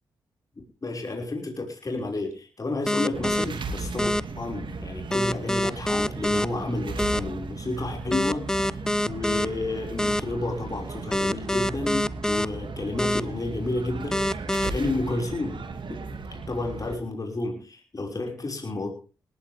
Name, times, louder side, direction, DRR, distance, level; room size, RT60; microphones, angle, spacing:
voice 1, 0.8-8.5 9.1-14.2 14.6-16.0 16.3-18.9, left 2 dB, 40° left, 1 dB, 5.6 m, -31 dB
sound 1, 2.9-3.4 4.0-4.2 5.1-6.5 7.0-7.2 8.1-9.5 10.0-10.2 11.1-12.5 13.0-13.2 14.1-14.7, left 1 dB, 5° left, 0.8 m, -25 dB
sound 2, 3.1-17.0, right 3 dB, 60° right, 2.4 m, -36 dB
19.0 x 16.0 x 3.5 m, 0.36 s
supercardioid pair, 40°, 9 cm